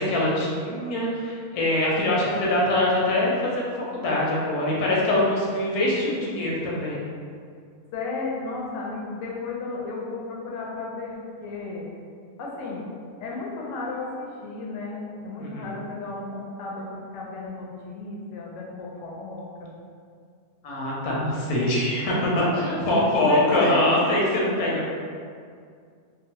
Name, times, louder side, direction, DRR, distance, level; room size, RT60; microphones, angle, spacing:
voice 1, 0.0-7.0 15.4-15.8 20.6-24.9, left 1 dB, 85° left, -4 dB, 1.1 m, -23 dB
voice 2, 7.9-11.9 12.4-12.9 13.2-16.9 17.1-19.7 22.4-23.9 24.5-24.7, left 3 dB, 70° left, -3 dB, 0.8 m, -33 dB
2.9 x 2.0 x 2.9 m, 2.2 s
omnidirectional pair, 1.6 m